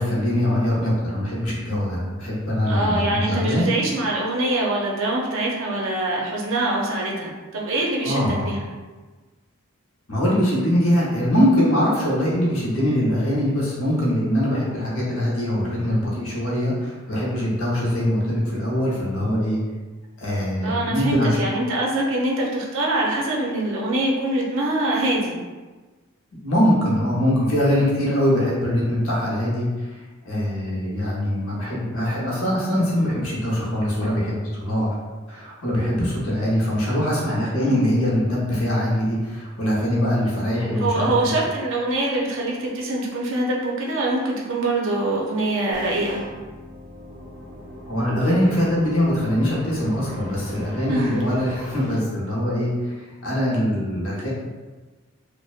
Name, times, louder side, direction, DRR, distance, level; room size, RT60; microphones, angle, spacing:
voice 1, 0.0-3.7 8.0-8.5 10.1-19.6 20.2-21.5 26.4-34.9 35.3-41.1 47.9-54.3, equal, 85° left, -6 dB, 0.8 m, -22 dB
voice 2, 2.7-8.6 20.6-25.4 37.6-37.8 40.8-46.2 50.9-51.2, right 1 dB, 65° right, -3 dB, 0.5 m, -24 dB
sound 1, 45.7-52.0, equal, 20° right, 0.5 m, -40 dB
2.5 x 2.1 x 2.4 m, 1.3 s
head